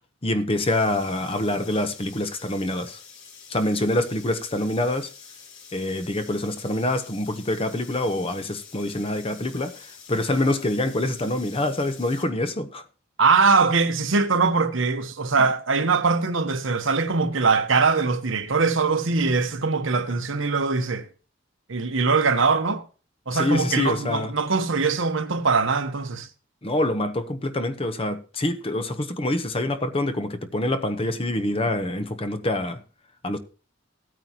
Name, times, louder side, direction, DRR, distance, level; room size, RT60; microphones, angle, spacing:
voice 1, 0.2-3.0 3.5-5.1 5.7-12.8 23.3-24.3 26.6-32.8 33.2-33.4, left 1 dB, 30° left, 0.9 m, -26 dB
sound 1, 0.5-12.2, left 6 dB, 75° left, 5.4 m, -47 dB
voice 2, 13.2-21.1 21.7-22.8 23.3-26.3, right 4 dB, 70° right, 1.1 m, -22 dB
16.0 x 9.3 x 2.9 m
head